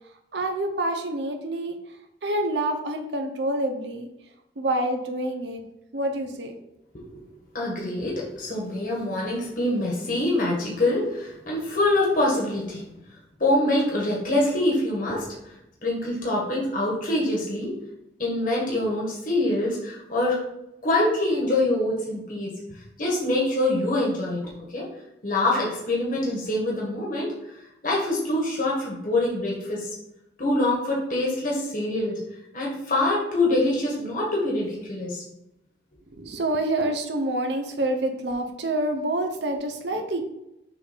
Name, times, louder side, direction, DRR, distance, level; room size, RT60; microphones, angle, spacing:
voice 1, 0.3-1.8 2.2-4.1 4.6-5.6 5.9-6.6 36.2-40.2, right 1 dB, 70° right, 5 dB, 0.7 m, -27 dB
voice 2, 7.5-12.8 13.4-15.3 15.8-17.7 18.2-20.4 20.8-22.5 23.0-24.9 25.2-27.3 27.8-29.9 30.4-32.2 32.5-35.2, left 1 dB, 50° left, -3 dB, 1.6 m, -25 dB
6.7 x 3.5 x 5.1 m, 0.87 s
head